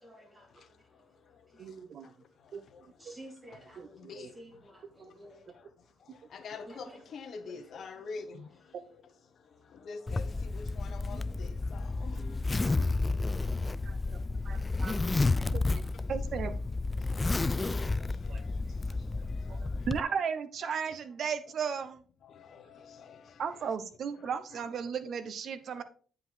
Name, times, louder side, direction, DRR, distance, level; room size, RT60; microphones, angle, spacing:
voice 1, 0.0-1.1 1.5-1.7 3.0-5.5 6.7-7.0 7.7-7.8 11.1-11.4 12.1-12.4 12.7-13.0 15.0-15.6 24.6-24.7, right 1 dB, 20° right, 2.7 m, -52 dB
voice 2, 1.6-2.1 2.5-2.6 3.0-3.1 3.8-4.3 5.0-5.1 6.1-6.2 13.1-13.2 13.9-14.0 14.4-15.0 15.5-15.6 16.1-16.5 18.3-18.4 19.5-22.0 23.4-25.8, right 6 dB, 60° right, 0.9 m, -35 dB
voice 3, 3.9-4.3 6.3-8.5 9.8-12.2 17.2-17.3 18.0-18.5 19.4-19.6 22.3-23.2 23.6-23.7 24.2-24.4, left 4 dB, 60° left, 1.2 m, -45 dB
Zipper (clothing), 10.1-20.0, left 3 dB, 20° left, 0.3 m, -31 dB
9.3 x 5.4 x 3.8 m
cardioid pair, 90°, 0 cm